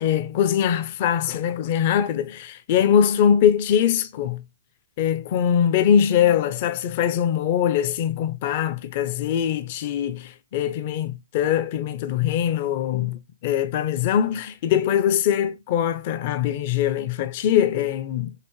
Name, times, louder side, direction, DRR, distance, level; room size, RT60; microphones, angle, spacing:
voice 1, 0.0-4.4 5.0-18.3, left 9 dB, 35° left, 0.5 m, -22 dB
6.6 x 2.6 x 3.0 m
hypercardioid pair, 155°, 0 cm